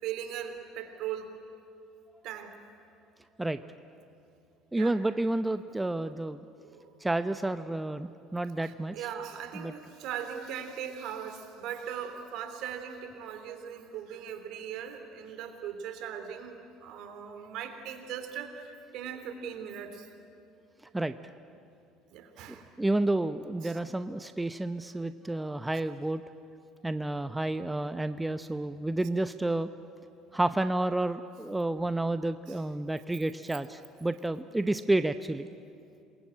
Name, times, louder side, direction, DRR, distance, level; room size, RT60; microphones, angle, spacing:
voice 1, 0.0-1.3 2.2-2.6 4.7-4.9 6.6-6.9 8.2-20.1 22.1-22.7 23.6-23.8 27.3-27.4 32.5-32.6 34.3-34.4, right 8 dB, 60° right, 7 dB, 3.3 m, -39 dB
voice 2, 4.7-6.4 7.0-9.0 9.5-9.7 20.9-21.1 22.8-26.2 26.8-29.7 30.3-35.5, right 2 dB, 10° right, 11 dB, 0.8 m, -30 dB
27.5 x 22.0 x 8.9 m, 2.5 s
hypercardioid pair, 65°, 0 cm